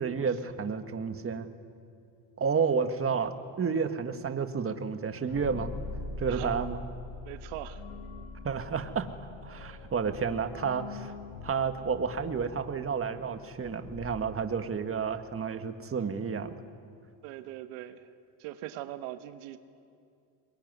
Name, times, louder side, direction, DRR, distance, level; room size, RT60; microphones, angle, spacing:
voice 1, 0.0-1.5 2.4-5.7 6.2-6.8 8.4-9.1 9.4-11.1 11.4-16.5, right 6 dB, 25° right, 8 dB, 1.8 m, -31 dB
sound 1, 5.3-14.9, left 3 dB, 75° left, 3.2 m, -43 dB
voice 2, 6.3-6.6 7.2-7.8 17.2-18.1 18.4-19.6, right 14 dB, 75° right, 9 dB, 1.4 m, -41 dB
22.0 x 21.5 x 9.6 m, 2.4 s
supercardioid pair, 90°, 48 cm